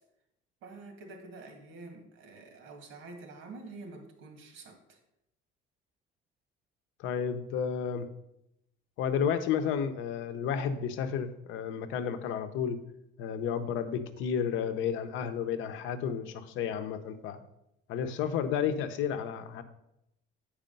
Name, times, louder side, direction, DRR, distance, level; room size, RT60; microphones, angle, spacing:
voice 1, 0.6-5.0, right 3 dB, 75° right, 5 dB, 1.9 m, -47 dB
voice 2, 7.0-8.1 9.0-12.8 13.2-17.4 17.9-19.6, left 7 dB, 75° left, 9 dB, 0.8 m, -32 dB
8.9 x 4.9 x 5.3 m, 0.83 s
cardioid pair, 155°, 20 cm